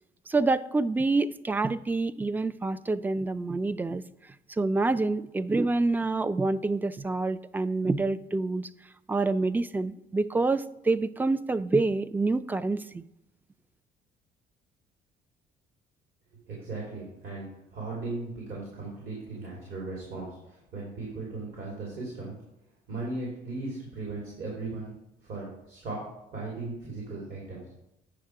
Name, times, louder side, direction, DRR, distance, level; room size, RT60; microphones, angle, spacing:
voice 1, 0.3-4.0 4.5-8.7 9.1-13.0, right 3 dB, 10° right, 16 dB, 0.3 m, -27 dB
voice 2, 16.5-22.4 22.9-24.9 25.2-26.0 26.3-27.6, right 3 dB, 60° right, -4 dB, 3.2 m, -37 dB
8.9 x 5.8 x 4.7 m, 0.86 s
cardioid pair, 110°, 17 cm